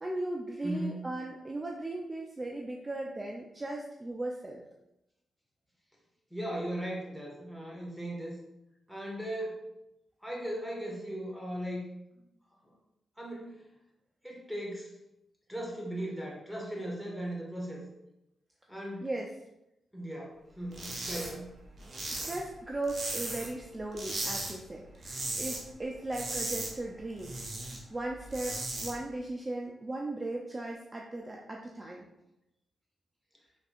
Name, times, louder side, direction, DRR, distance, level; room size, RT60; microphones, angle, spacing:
voice 1, 0.0-4.6 19.0-19.3 22.2-32.1, right 2 dB, 25° right, 0 dB, 0.5 m, -37 dB
voice 2, 0.6-1.0 6.3-8.3 8.9-9.6 10.2-11.9 13.2-13.6 14.2-14.9 15.5-17.8 18.7-19.1 19.9-21.5, right 1 dB, ahead, -3 dB, 1.5 m, -37 dB
sound 1, 20.7-21.3 21.6-23.6 23.9-24.5 24.8-25.6 25.9-27.8 28.1-28.9, right 2 dB, 55° right, 1.2 m, -36 dB
5.3 x 3.5 x 2.5 m, 0.87 s
cardioid pair, 70°, 0 cm